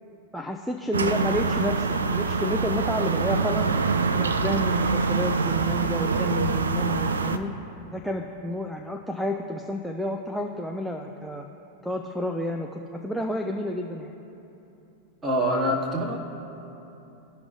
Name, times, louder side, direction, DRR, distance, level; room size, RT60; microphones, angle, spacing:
voice 1, 0.3-3.7 4.1-7.5 7.9-11.5 11.8-14.1, left 1 dB, ahead, 4 dB, 0.5 m, -30 dB
sound 1, 0.9-7.4, right 4 dB, 70° right, 0.4 m, -25 dB
voice 2, 15.2-16.2, equal, 20° right, -2 dB, 1.7 m, -25 dB
17.5 x 6.0 x 2.5 m, 2.9 s
figure-of-eight pair, 90°, 0 cm